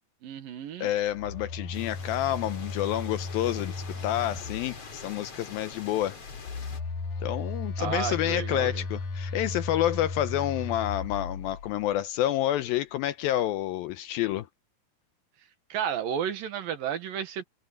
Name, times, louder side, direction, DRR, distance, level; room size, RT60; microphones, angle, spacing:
voice 1, 0.2-0.9 7.8-8.8 15.7-17.4, right 8 dB, 65° right, 3.0 m, -32 dB
voice 2, 0.8-6.2 7.2-14.5, left 13 dB, 80° left, 2.3 m, -29 dB
Telephone, 1.1-5.1 6.2-11.9, left 3 dB, 55° left, 3.7 m, -36 dB
sound 1, 1.7-6.8, left 4 dB, 40° left, 4.5 m, -45 dB
omnidirectional pair, 4.7 m